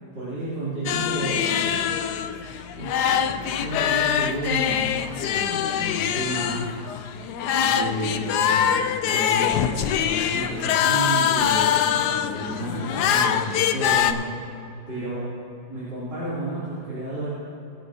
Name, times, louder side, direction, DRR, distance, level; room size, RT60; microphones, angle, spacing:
voice 1, 0.1-1.8 2.7-4.9 5.2-6.8 7.6-8.7 9.1-11.8 12.2-14.3 14.9-15.2 15.7-17.3, right 1 dB, 60° right, -13 dB, 3.8 m, -31 dB
sound 1, 0.9-14.1, left 9 dB, 70° left, 1.0 m, -23 dB
20.5 x 10.0 x 2.8 m, 2.8 s
omnidirectional pair, 2.1 m